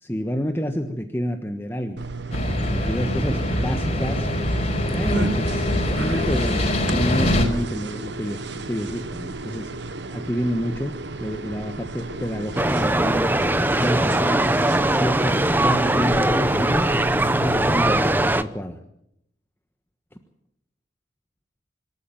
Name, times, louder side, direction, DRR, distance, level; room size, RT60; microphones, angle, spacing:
voice 1, 0.0-2.0 2.6-4.3 4.9-9.7 10.1-13.3 13.8-14.4 14.9-16.9 17.4-18.8, equal, 10° left, 5 dB, 1.3 m, -28 dB
sound 1, 2.0-18.0, right 3 dB, 65° right, 1.3 m, -33 dB
sound 2, 2.3-7.4, left 1 dB, 30° left, 4.9 m, -23 dB
sound 3, 12.6-18.4, right 1 dB, 10° right, 0.7 m, -20 dB
26.0 x 13.5 x 9.1 m, 0.76 s
head